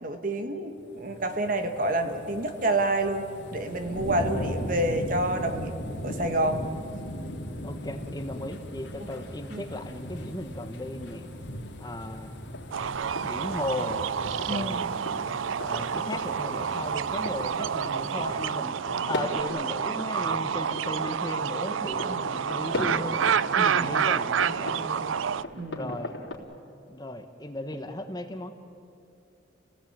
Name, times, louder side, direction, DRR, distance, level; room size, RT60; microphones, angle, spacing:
voice 1, 0.0-3.3 3.5-5.7 6.0-6.6 9.5-9.6 14.5-15.0 17.4-17.6 22.0-22.3 23.6-24.1 25.6-26.0, right 1 dB, 45° right, 6 dB, 1.7 m, -29 dB
sound 1, 0.8-19.0 19.4-19.5, equal, 65° left, 2.8 m, -39 dB
voice 2, 4.2-4.8 7.6-11.3 11.8-12.3 13.2-14.0 14.5-14.9 15.6-18.7 19.1-23.2 23.6-25.2 25.7-26.1 26.9-28.5, left 1 dB, 20° left, 7 dB, 1.1 m, -36 dB
sound 2, 12.3-26.3, left 1 dB, 85° left, 3.5 m, -40 dB
sound 3, 12.7-25.4, right 7 dB, 85° right, 0.5 m, -29 dB
29.5 x 18.0 x 8.7 m, 2.6 s
head